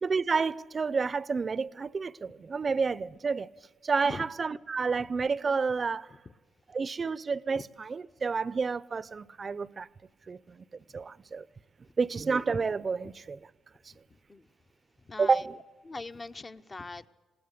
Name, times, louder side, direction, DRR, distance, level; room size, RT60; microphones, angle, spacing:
voice 1, 0.0-3.5 3.8-6.1 6.7-9.9 10.3-10.6 10.9-11.4 12.0-13.4 15.2-15.6, right 5 dB, 35° right, 0.6 m, -30 dB
voice 2, 15.1-15.4 15.8-17.1, left 3 dB, 25° left, 0.8 m, -41 dB
20.0 x 18.0 x 8.2 m
cardioid pair, 90°, 0 cm